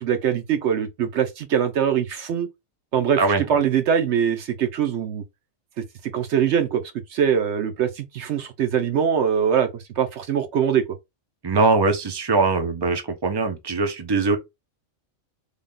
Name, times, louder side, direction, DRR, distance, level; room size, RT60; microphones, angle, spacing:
voice 1, 0.0-2.5 2.9-5.2 5.8-5.9 6.1-6.8 7.1-10.8, right 8 dB, 65° right, 0.9 m, -22 dB
voice 2, 11.4-14.4, right 3 dB, 30° right, 0.4 m, -21 dB
3.5 x 2.3 x 3.7 m
omnidirectional pair, 1.4 m